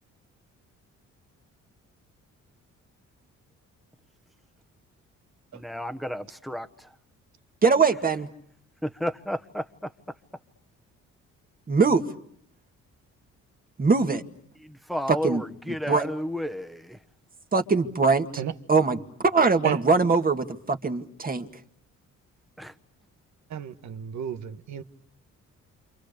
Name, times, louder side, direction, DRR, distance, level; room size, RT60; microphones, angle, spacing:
voice 1, 5.5-6.7 8.8-9.6 14.6-17.0 22.6-22.7, equal, ahead, 1.4 m, -32 dB
voice 2, 7.6-8.3 11.7-12.1 13.8-14.2 15.1-15.4 15.9-16.1 17.5-18.3 18.7-19.0 19.2-21.5, right 4 dB, 30° right, 2.0 m, -22 dB
voice 3, 23.5-24.8, right 9 dB, 65° right, 1.5 m, -31 dB
29.0 x 27.0 x 6.8 m
cardioid pair, 90°, 30 cm